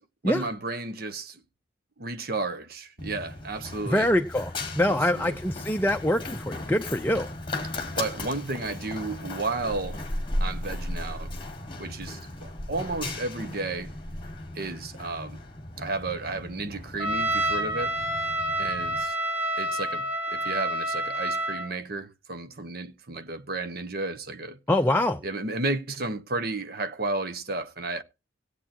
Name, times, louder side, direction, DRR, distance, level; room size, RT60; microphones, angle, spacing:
voice 1, 0.2-1.4 2.0-4.1 4.9-5.4 7.9-10.0 10.4-11.3 11.8-13.9 14.5-15.4 15.8-18.0 18.6-19.2 19.6-24.6 25.2-28.0, right 3 dB, 50° right, 1.0 m, -33 dB
Run, 3.0-19.0, left 1 dB, 25° left, 1.7 m, -36 dB
voice 2, 3.9-4.5 4.8-7.3 24.7-25.2, left 1 dB, 10° left, 0.6 m, -24 dB
Trumpet, 17.0-21.7, right 1 dB, 10° right, 2.0 m, -28 dB
18.0 x 8.3 x 2.9 m
head